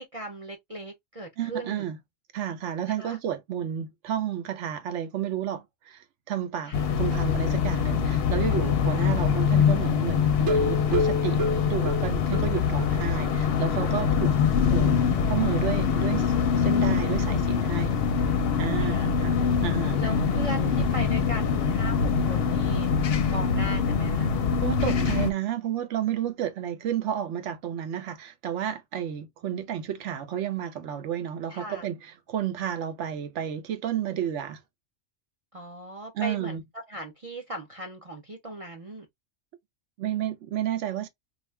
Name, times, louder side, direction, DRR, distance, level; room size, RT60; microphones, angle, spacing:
voice 1, 0.0-1.9 3.0-3.2 6.6-7.0 14.3-15.1 18.8-19.2 20.0-22.9 23.3-24.3 31.5-31.9 35.5-39.1, right 1 dB, 45° right, 0.5 m, -38 dB
voice 2, 1.4-2.0 2.3-14.4 14.7-14.9 15.3-18.0 18.6-19.4 19.6-20.0 24.6-34.6 36.1-36.6 40.0-41.1, right 10 dB, 70° right, 1.0 m, -31 dB
sound 1, 6.7-25.3, left 6 dB, 60° left, 0.7 m, -24 dB
sound 2, 10.3-12.9 13.2-13.3 13.7-13.8 14.2-14.3, left 2 dB, 90° right, 1.3 m, -28 dB
2.6 x 2.4 x 3.1 m
omnidirectional pair, 1.3 m